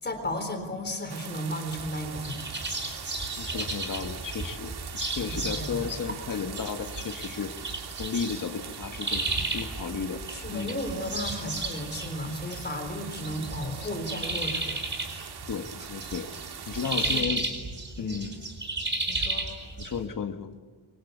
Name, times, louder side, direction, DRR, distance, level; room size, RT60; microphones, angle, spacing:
voice 1, 0.0-2.5 5.3-5.9 10.3-15.5 16.7-17.3 18.0-18.2 19.1-19.5, left 1 dB, 25° left, 6 dB, 4.0 m, -35 dB
sound 1, 1.1-17.2, right 8 dB, 70° right, 1.9 m, -42 dB
sound 2, 1.7-20.0, right 2 dB, 25° right, 4.6 m, -34 dB
voice 2, 3.4-4.7 5.0-7.5 8.0-10.2 10.5-10.8 15.5-16.3 16.7-17.5 18.0-18.3 19.8-20.5, left 6 dB, 50° left, 6 dB, 1.8 m, -33 dB
27.5 x 24.5 x 8.3 m, 1.4 s
wide cardioid pair, 150°, 40 cm